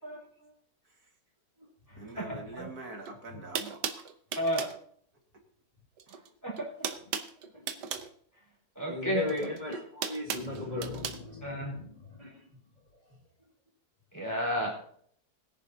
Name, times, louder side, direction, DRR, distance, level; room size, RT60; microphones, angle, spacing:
voice 1, 0.0-0.5 2.2-2.7 4.3-4.7 6.4-6.8 8.8-9.3 11.4-11.7 14.1-14.8, equal, 10° left, 4.3 m, -32 dB
voice 2, 2.0-4.1, right 3 dB, 65° right, 2.3 m, -45 dB
sound 1, 3.0-3.1 3.5-4.8 6.0-6.3 6.5-8.1 9.3-11.2, right 7 dB, 85° right, 1.5 m, -36 dB
voice 3, 8.8-12.3, left 3 dB, 25° left, 2.3 m, -37 dB
21.0 x 10.5 x 2.8 m
omnidirectional pair, 1.8 m